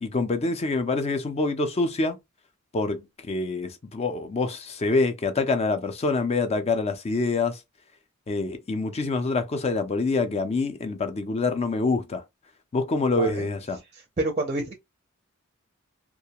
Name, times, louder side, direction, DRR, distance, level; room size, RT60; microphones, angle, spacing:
voice 1, 0.0-2.2 2.7-7.6 8.3-12.2 12.7-13.8, left 3 dB, 30° left, 0.4 m, -26 dB
voice 2, 13.2-13.5 13.9-14.8, right 2 dB, 30° right, 0.5 m, -29 dB
2.3 x 2.1 x 2.7 m
head